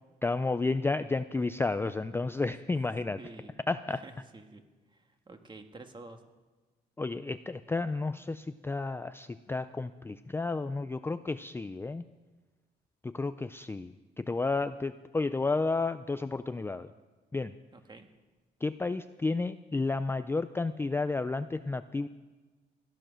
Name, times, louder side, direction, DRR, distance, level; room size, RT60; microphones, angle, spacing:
voice 1, 0.2-3.2 3.7-4.0 7.0-12.0 13.0-16.9 17.3-17.5 18.6-22.1, left 3 dB, 15° left, 11 dB, 0.4 m, -32 dB
voice 2, 3.2-3.6 3.9-6.2 17.7-18.1, right 2 dB, 25° right, 6 dB, 1.6 m, -50 dB
17.0 x 11.5 x 6.4 m, 1.3 s
cardioid pair, 120°, 18 cm